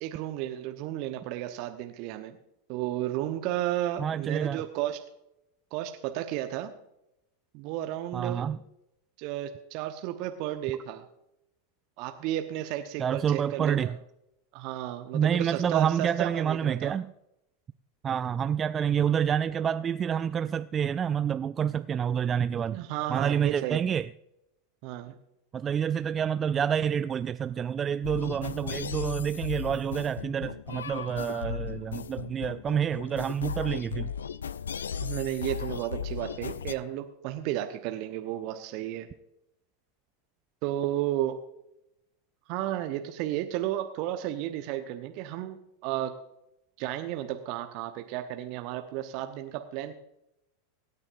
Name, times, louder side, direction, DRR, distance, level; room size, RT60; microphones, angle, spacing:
voice 1, 0.0-2.3 2.7-5.0 5.7-6.7 7.5-8.5 9.2-11.0 12.0-13.9 14.5-17.0 22.7-23.8 24.8-25.1 35.0-39.1 40.6-41.3 42.5-45.6 45.8-46.1 46.8-49.9, right 13 dB, 50° right, 1.0 m, -33 dB
voice 2, 4.0-4.6 8.1-8.6 13.0-14.0 15.1-17.1 18.0-22.8 23.1-24.1 25.5-34.1, right 8 dB, 25° right, 0.3 m, -28 dB
sound 1, 28.0-36.7, left 7 dB, 75° left, 0.4 m, -36 dB
24.0 x 9.7 x 2.6 m
figure-of-eight pair, 85°, 0 cm